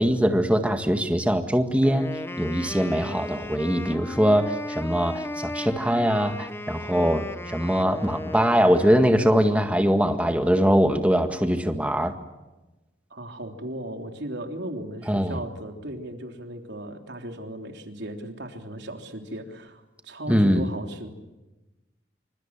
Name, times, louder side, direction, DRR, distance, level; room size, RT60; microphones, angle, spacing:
voice 1, 0.0-12.1 15.1-15.4 20.3-20.7, equal, 10° right, 6 dB, 1.8 m, -22 dB
Wind instrument woodwind instrument, 1.8-9.4, left 1 dB, 15° left, 0.9 m, -36 dB
voice 2, 13.1-21.1, right 1 dB, 80° right, 4 dB, 3.5 m, -36 dB
28.0 x 25.0 x 7.4 m, 1.1 s
head